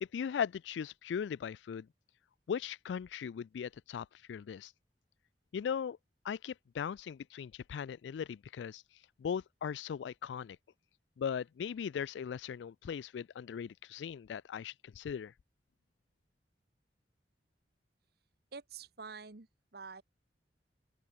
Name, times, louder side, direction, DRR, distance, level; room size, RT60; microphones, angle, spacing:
voice 1, 0.0-1.9 2.5-4.7 5.5-6.0 6.2-8.8 9.2-10.6 11.2-15.3, left 7 dB, 85° left, 0.3 m, -38 dB
voice 2, 18.5-19.5 19.7-20.0, right 5 dB, 60° right, 1.2 m, -47 dB
open air
head